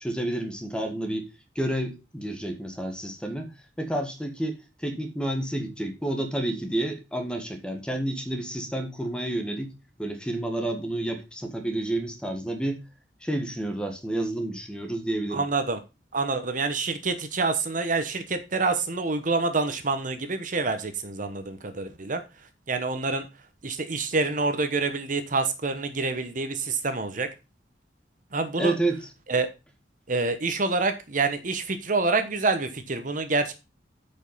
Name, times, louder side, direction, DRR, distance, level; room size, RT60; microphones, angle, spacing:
voice 1, 0.0-1.3 1.5-3.5 3.8-9.7 10.0-12.8 13.2-15.4 28.6-29.1, right 1 dB, 5° left, 1.5 m, -30 dB
voice 2, 15.3-15.8 16.1-22.2 22.7-23.3 23.6-27.3 28.3-28.7 29.3-29.5 30.1-33.5, right 3 dB, 45° right, 1.0 m, -27 dB
8.7 x 5.4 x 5.5 m
head